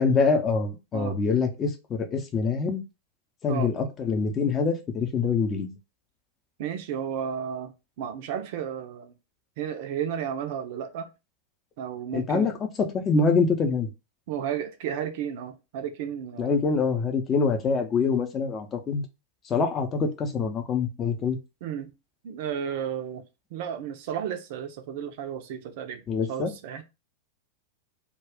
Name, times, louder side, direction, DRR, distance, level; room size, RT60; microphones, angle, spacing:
voice 1, 0.0-2.8 3.4-5.7 12.1-13.9 16.4-19.1 19.5-21.4 26.1-26.5, left 4 dB, 25° left, 0.6 m, -25 dB
voice 2, 6.6-9.1 9.6-11.1 11.8-12.5 14.3-16.6 21.6-21.9 22.2-23.2 23.5-26.8, right 8 dB, 50° right, 0.5 m, -33 dB
2.3 x 2.2 x 3.5 m
figure-of-eight pair, 90°, 0 cm